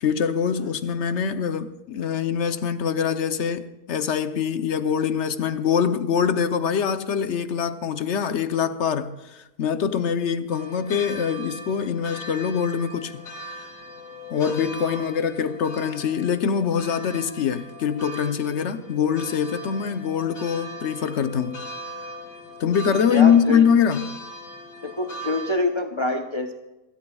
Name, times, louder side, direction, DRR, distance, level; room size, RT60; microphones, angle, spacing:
voice 1, 0.0-13.2 14.3-21.6 22.6-24.1, left 7 dB, 55° left, 1.0 m, -23 dB
sound 1, 10.5-25.6, equal, 85° left, 3.1 m, -39 dB
voice 2, 23.1-23.6 24.8-26.5, left 2 dB, 25° left, 0.7 m, -26 dB
27.0 x 13.0 x 2.4 m
omnidirectional pair, 1.7 m